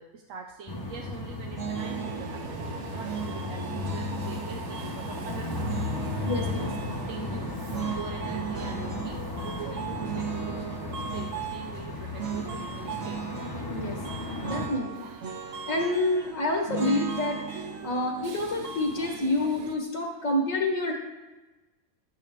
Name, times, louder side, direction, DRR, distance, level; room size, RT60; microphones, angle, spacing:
voice 1, 0.0-5.9 6.4-7.6 7.9-13.3, right 5 dB, 65° right, 3 dB, 1.0 m, -43 dB
sound 1, 0.7-14.7, left 3 dB, 20° left, 0.7 m, -35 dB
sound 2, 1.6-2.2 3.0-4.5 5.5-6.9 7.7-9.2 10.0-11.4 12.2-12.5 12.8-13.6 14.4-16.2 16.7-19.8, right 7 dB, 50° right, 1.4 m, -37 dB
Subway metro underground, 1.7-19.8, right 5 dB, 80° right, 1.3 m, -41 dB
voice 2, 6.2-6.7 13.7-14.0 14.5-15.1 15.7-20.9, left 2 dB, 60° left, 0 dB, 1.6 m, -28 dB
12.0 x 8.9 x 3.6 m, 1.1 s
omnidirectional pair, 1.6 m